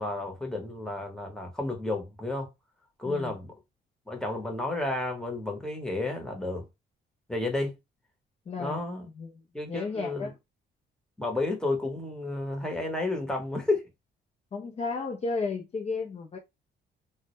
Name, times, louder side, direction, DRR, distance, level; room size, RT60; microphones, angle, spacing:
voice 1, 0.0-2.5 3.0-3.5 4.1-6.6 7.3-7.7 8.6-9.1 9.5-10.3 11.2-13.8, left 2 dB, 5° left, 0.8 m, -31 dB
voice 2, 8.5-8.8 9.2-9.3 9.7-10.3 14.5-16.4, left 4 dB, 30° left, 0.4 m, -33 dB
2.1 x 2.1 x 2.9 m
cardioid pair, 90°, 20 cm